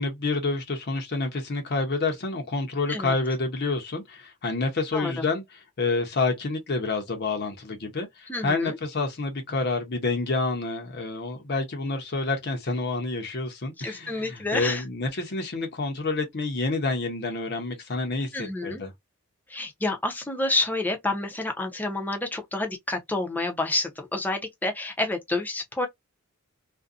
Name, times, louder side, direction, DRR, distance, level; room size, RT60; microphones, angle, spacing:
voice 1, 0.0-5.4 5.8-18.9, left 3 dB, 50° left, 0.7 m, -28 dB
voice 2, 4.9-5.3 8.3-8.8 13.8-14.9 18.3-18.8 19.5-25.9, left 2 dB, 10° left, 0.6 m, -29 dB
2.5 x 2.2 x 2.4 m
head